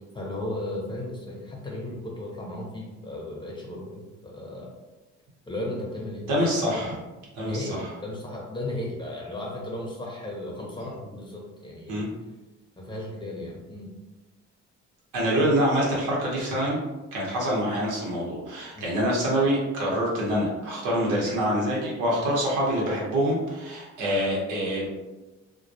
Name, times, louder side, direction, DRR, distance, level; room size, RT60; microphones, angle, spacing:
voice 1, 0.1-4.7 5.5-6.4 6.7-6.9 7.4-12.1 12.8-13.9 18.7-19.0, left 1 dB, 15° left, -2 dB, 0.6 m, -35 dB
voice 2, 6.3-7.0 7.3-7.9 11.9-12.1 15.1-16.8 17.1-24.9, equal, 90° right, -4 dB, 0.9 m, -25 dB
2.2 x 2.1 x 2.6 m, 1.1 s
cardioid pair, 90°, 30 cm